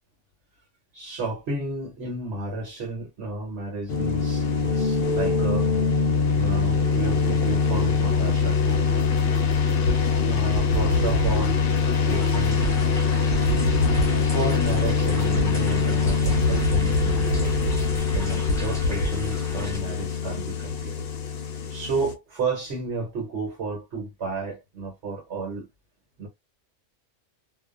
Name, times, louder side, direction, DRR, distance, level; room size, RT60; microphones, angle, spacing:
voice 1, 0.9-5.7 6.3-8.9 9.6-9.7 10.2-11.6 12.0-12.7 14.3-17.6 18.1-21.1 21.7-25.7 26.2-26.3, right 3 dB, 65° right, 1.1 m, -32 dB
sound 1, 3.9-22.1, left 5 dB, 60° left, 0.7 m, -23 dB
sound 2, 8.7-10.2 10.5-13.0 13.3-19.1, right 1 dB, 80° left, 1.0 m, -28 dB
sound 3, 12.1-19.8, equal, 5° left, 0.7 m, -39 dB
2.4 x 2.2 x 2.3 m
omnidirectional pair, 1.3 m